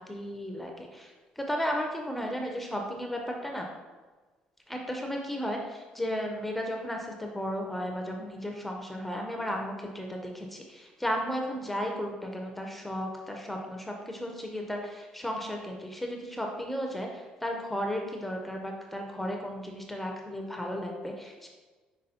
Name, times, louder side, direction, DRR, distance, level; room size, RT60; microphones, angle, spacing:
voice 1, 0.0-3.7 4.7-21.5, equal, 5° left, 1 dB, 0.4 m, -34 dB
5.3 x 3.6 x 2.7 m, 1.3 s
cardioid pair, 155°, 3 cm